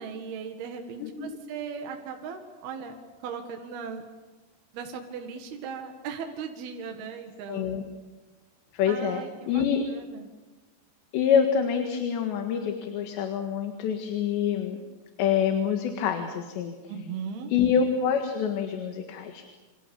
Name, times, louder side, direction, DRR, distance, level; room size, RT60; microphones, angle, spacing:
voice 1, 0.0-3.0 3.2-4.0 4.7-7.7 8.9-10.3 16.9-17.5, right 6 dB, 65° right, 3 dB, 3.6 m, -38 dB
voice 2, 1.0-1.4 7.5-7.8 8.7-9.2 9.5-9.8 11.1-14.8 15.2-16.8 17.5-19.4, left 7 dB, 80° left, 5 dB, 4.0 m, -26 dB
27.5 x 27.5 x 7.0 m, 1.2 s
omnidirectional pair, 5.0 m